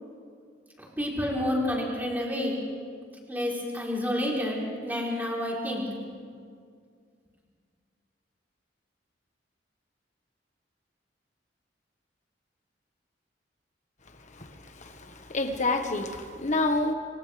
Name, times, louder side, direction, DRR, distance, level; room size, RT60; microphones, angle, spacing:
voice 1, 0.8-2.6 3.3-5.8, left 1 dB, 10° right, 4.0 m, -29 dB
voice 2, 14.3-16.9, left 2 dB, 40° left, 1.5 m, -29 dB
28.5 x 26.5 x 3.5 m
head